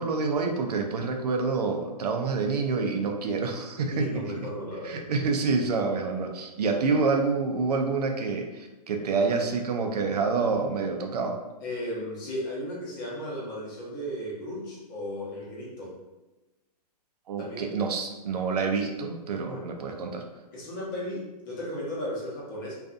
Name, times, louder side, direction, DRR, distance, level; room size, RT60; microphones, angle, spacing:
voice 1, 0.0-4.2 4.8-11.4 17.3-20.2, right 4 dB, 70° right, 4 dB, 0.5 m, -27 dB
voice 2, 3.9-5.1 11.6-15.9 17.4-17.7 19.5-19.7 20.5-22.7, equal, 30° left, -5 dB, 0.8 m, -35 dB
2.5 x 2.4 x 2.4 m, 1.0 s
hypercardioid pair, 170°, 21 cm